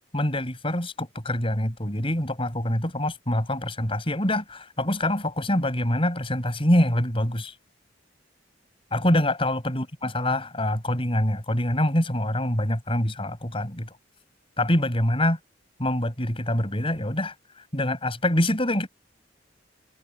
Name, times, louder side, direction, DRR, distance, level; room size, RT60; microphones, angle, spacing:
voice 1, 0.1-7.5 8.9-13.9 14.6-15.4 15.8-17.3 17.7-18.9, left 1 dB, 30° left, 7.3 m, -25 dB
head